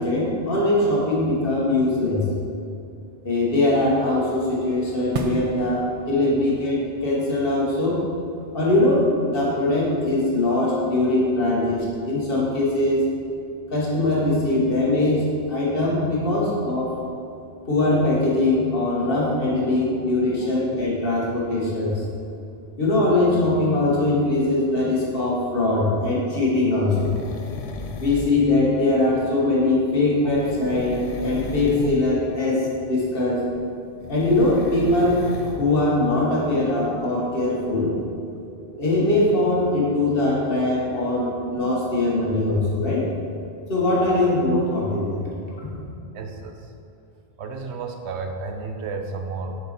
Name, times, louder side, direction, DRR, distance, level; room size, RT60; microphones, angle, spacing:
voice 1, 0.0-2.3 3.2-8.0 8.5-13.0 13.7-16.9 17.6-22.0 22.8-27.1 28.0-33.4 34.1-38.0 38.7-43.1 43.7-45.8, left 2 dB, 60° left, -5 dB, 1.7 m, -21 dB
sound 1, 4.0-9.3, right 3 dB, 50° right, 0.4 m, -37 dB
sound 2, 27.0-28.5 30.3-32.0 34.0-35.6 36.1-36.2, left 4 dB, 90° left, 0.9 m, -34 dB
voice 2, 46.1-46.7 47.4-49.6, right 4 dB, 85° right, 4 dB, 1.0 m, -32 dB
6.8 x 4.7 x 4.4 m, 2.5 s
omnidirectional pair, 1.1 m